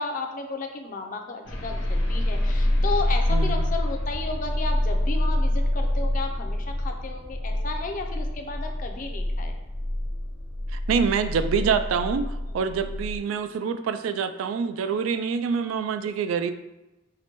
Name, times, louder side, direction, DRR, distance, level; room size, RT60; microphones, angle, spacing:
voice 1, 0.0-9.6 12.5-12.6, left 3 dB, 40° left, 4 dB, 0.4 m, -33 dB
sound 1, 1.4-13.2, left 1 dB, 75° left, 1.0 m, -26 dB
voice 2, 3.3-3.7 10.7-16.5, right 6 dB, 85° right, 11 dB, 0.3 m, -26 dB
5.7 x 2.1 x 2.9 m, 0.98 s
head